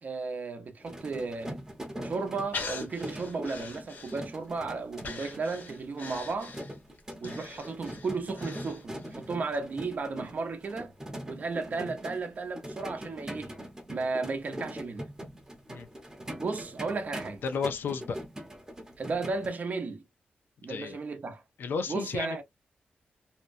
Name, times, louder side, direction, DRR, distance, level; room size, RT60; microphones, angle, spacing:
voice 1, 0.0-1.6 2.0-6.6 7.2-10.9 11.3-13.5 13.9-15.1 16.4-17.4 19.0-20.0 20.6-21.4 21.9-22.4, right 4 dB, 50° right, 0.7 m, -34 dB
sound 1, 0.8-19.5, equal, 20° right, 0.9 m, -42 dB
Breathing, 2.5-4.5 5.0-9.2 9.5-9.6, left 4 dB, 65° left, 1.2 m, -42 dB
voice 2, 17.4-18.2 20.7-21.0 21.6-22.4, left 5 dB, 80° left, 0.5 m, -32 dB
2.8 x 2.2 x 2.5 m
wide cardioid pair, 100°, 3 cm